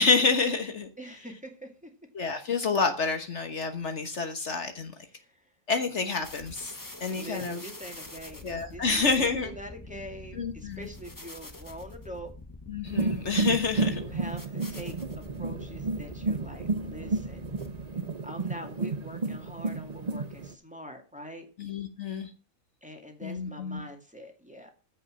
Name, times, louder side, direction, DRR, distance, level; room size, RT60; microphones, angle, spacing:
voice 1, 0.0-0.9 2.1-4.9 5.7-6.7 7.0-7.7 8.4-9.5 10.3-10.9 12.7-14.0 21.6-22.3 23.2-23.8, left 4 dB, 60° left, 7 dB, 1.5 m, -28 dB
voice 2, 1.0-1.9 5.1-5.5 7.1-12.3 13.9-17.5 18.2-21.5 22.8-24.7, right 1 dB, 5° right, 4 dB, 2.1 m, -44 dB
sound 1, 6.2-18.0, left 2 dB, 15° left, 1.2 m, -46 dB
sound 2, 12.9-20.5, right 3 dB, 35° right, 0.8 m, -31 dB
15.0 x 5.6 x 6.3 m, 0.35 s
omnidirectional pair, 1.4 m